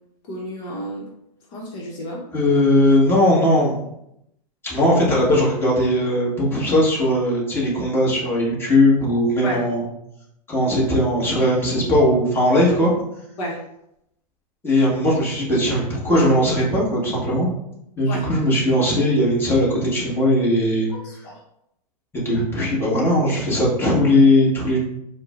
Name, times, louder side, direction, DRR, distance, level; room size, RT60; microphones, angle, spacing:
voice 1, 0.3-1.1 1.5-2.2 9.4-9.6 13.4-13.6 18.1-18.3 20.9-21.4, equal, 50° left, -3 dB, 0.9 m, -31 dB
voice 2, 2.3-3.8 4.6-9.8 10.5-12.9 14.6-17.5 18.0-20.9 22.1-24.8, left 1 dB, 10° left, -6 dB, 1.2 m, -19 dB
4.5 x 2.1 x 2.4 m, 0.79 s
hypercardioid pair, 115°, 21 cm